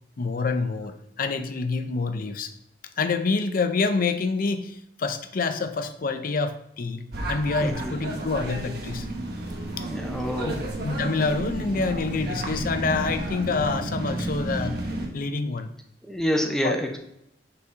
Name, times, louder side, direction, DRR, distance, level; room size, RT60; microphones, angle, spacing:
voice 1, 0.2-2.5 3.0-9.1 9.8-9.9 10.4-14.9 15.1-15.7 16.6-16.8, left 4 dB, 50° left, 9 dB, 0.5 m, -27 dB
sound 1, 7.1-15.1, right 1 dB, 60° right, 1.1 m, -32 dB
voice 2, 7.6-7.9 9.9-10.6 16.1-17.0, equal, 5° left, 3 dB, 0.6 m, -27 dB
5.6 x 4.0 x 4.7 m, 0.80 s
head